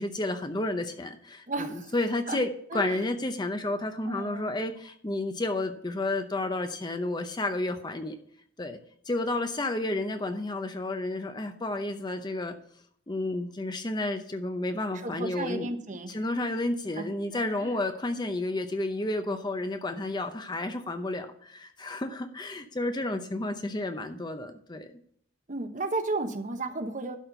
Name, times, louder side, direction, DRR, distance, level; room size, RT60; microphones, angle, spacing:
voice 1, 0.0-8.2 8.6-8.8 9.1-12.6 13.1-15.8 16.1-25.0, left 2 dB, 20° left, 7 dB, 0.7 m, -31 dB
voice 2, 1.5-1.9 2.3-2.4 2.7-3.0 4.0-4.6 14.9-16.2 17.0-17.1 17.3-17.8 25.5-27.2, right 2 dB, 40° right, 7 dB, 1.0 m, -34 dB
12.0 x 4.3 x 6.7 m, 0.64 s
head